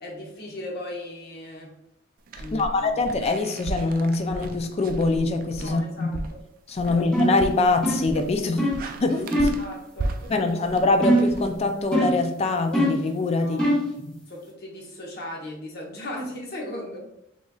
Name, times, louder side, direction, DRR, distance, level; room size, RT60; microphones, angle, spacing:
voice 1, 0.0-1.7 2.4-3.0 5.6-6.4 6.8-7.0 9.4-10.6 13.4-13.7 14.3-17.0, left 1 dB, 55° left, -1 dB, 0.9 m, -37 dB
sound 1, 2.3-12.1, right 2 dB, 45° right, 0.3 m, -36 dB
voice 2, 2.5-6.2 6.7-8.7 9.0-9.5 10.3-13.6 14.0-14.2, left 3 dB, 35° left, 6 dB, 0.3 m, -24 dB
sound 2, 7.1-7.4 7.8-8.2 8.6-8.8 9.3-9.6 11.0-11.4 11.9-12.3 12.7-13.1 13.6-13.9, equal, 5° left, 0.9 m, -22 dB
3.9 x 3.1 x 2.3 m, 0.79 s
head